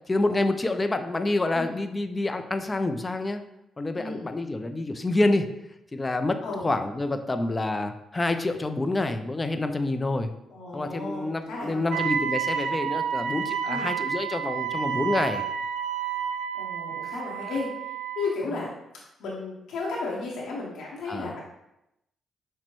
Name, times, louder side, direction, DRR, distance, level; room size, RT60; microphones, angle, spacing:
voice 1, 0.0-3.4 3.8-5.5 5.9-10.3 10.7-15.4 17.0-17.2 21.1-21.3, left 2 dB, 25° left, 8 dB, 0.4 m, -27 dB
voice 2, 10.5-12.0 13.7-13.9 16.5-17.7 18.2-18.7 19.2-21.4, left 3 dB, 80° left, -5 dB, 0.9 m, -33 dB
Wind instrument woodwind instrument, 11.9-18.3, right 8 dB, 80° right, 0.3 m, -30 dB
5.9 x 2.1 x 3.0 m, 0.86 s
supercardioid pair, 65°, 0 cm